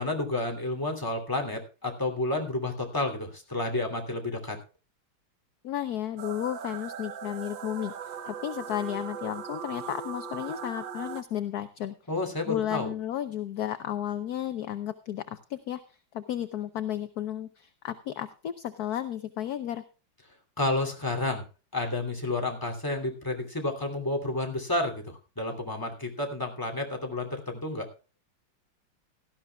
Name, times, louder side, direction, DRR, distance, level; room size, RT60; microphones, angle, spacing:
voice 1, 0.0-4.6 12.1-12.9 20.6-21.4 21.7-27.9, left 2 dB, 10° left, 1 dB, 2.8 m, -30 dB
voice 2, 5.6-11.9 12.5-19.8, left 11 dB, 60° left, 11 dB, 1.1 m, -33 dB
sound 1, 6.2-11.2, right 7 dB, 75° right, 1.8 m, -39 dB
17.5 x 13.5 x 2.3 m, 0.33 s
omnidirectional pair, 2.1 m